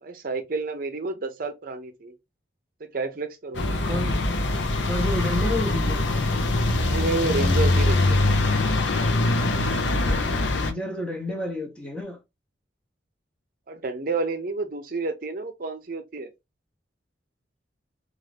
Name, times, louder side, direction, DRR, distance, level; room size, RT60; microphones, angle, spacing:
voice 1, 0.0-2.1 2.8-3.9 6.9-8.2 13.7-16.3, right 3 dB, 50° right, 0.5 m, -30 dB
sound 1, 3.5-10.7, left 2 dB, 70° left, 0.5 m, -23 dB
voice 2, 3.8-4.2 4.9-6.1 10.0-12.2, left 1 dB, 5° left, 0.6 m, -31 dB
2.5 x 2.4 x 3.2 m
head